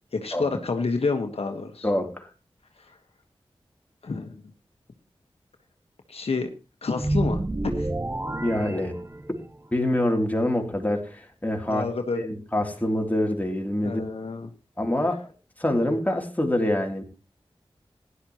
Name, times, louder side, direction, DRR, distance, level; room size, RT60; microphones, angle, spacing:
voice 1, 0.1-1.9 4.0-4.4 6.1-6.5 6.8-7.9 11.7-12.2 13.8-14.5, left 4 dB, 80° left, 5 dB, 1.4 m, -29 dB
voice 2, 1.8-2.3 8.4-9.0 9.3-9.4 9.7-11.9 12.1-14.1 14.8-15.3 15.6-17.0, left 1 dB, 15° left, 2 dB, 3.1 m, -25 dB
sound 1, 7.0-9.6, right 2 dB, 25° right, 0.7 m, -29 dB
16.5 x 11.5 x 3.0 m, 0.28 s
cardioid pair, 45°, 10 cm